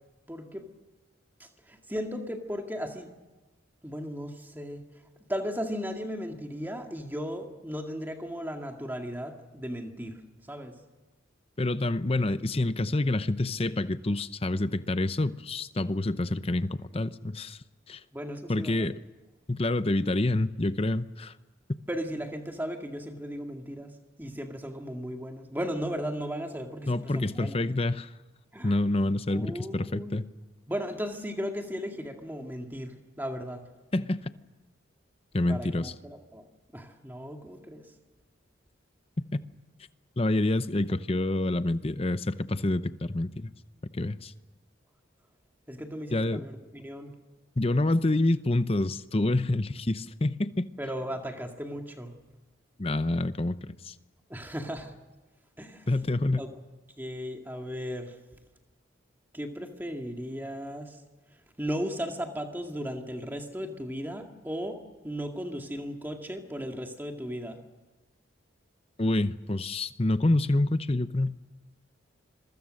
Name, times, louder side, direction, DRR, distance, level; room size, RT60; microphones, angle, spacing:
voice 1, 0.3-0.6 1.4-3.1 3.8-4.8 5.3-10.2 10.5-10.7 18.1-18.9 21.9-23.9 24.2-27.6 28.5-28.7 29.3-30.2 30.7-33.6 35.5-36.4 36.7-37.9 45.7-47.1 50.8-52.1 54.3-54.9 55.6-55.9 56.4-56.5 57.0-58.2 59.3-61.0 61.6-64.8 65.0-67.6, equal, 10° right, 3 dB, 2.1 m, -36 dB
voice 2, 11.6-17.6 17.9-18.0 18.5-19.0 19.5-21.3 26.9-28.1 28.6-30.3 33.9-34.3 35.3-35.9 39.2-39.3 40.2-43.5 43.9-44.3 46.1-46.4 47.6-50.7 52.8-53.6 53.8-53.9 55.9-56.4 69.0-71.4, left 2 dB, 30° left, 13 dB, 0.7 m, -27 dB
26.5 x 23.0 x 6.5 m, 1.2 s
head